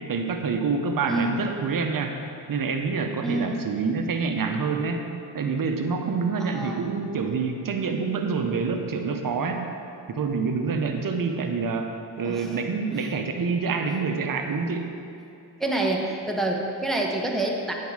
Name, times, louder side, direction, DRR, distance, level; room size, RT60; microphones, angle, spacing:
voice 1, 0.1-2.1 2.5-5.1 5.3-9.6 10.1-14.9, right 5 dB, 50° right, 5 dB, 0.9 m, -27 dB
voice 2, 1.0-1.4 3.2-3.7 6.4-6.9 12.2-12.6 12.9-13.1 15.6-17.7, right 2 dB, ahead, 0 dB, 0.9 m, -27 dB
9.2 x 4.7 x 4.8 m, 2.6 s
cardioid pair, 60°, 42 cm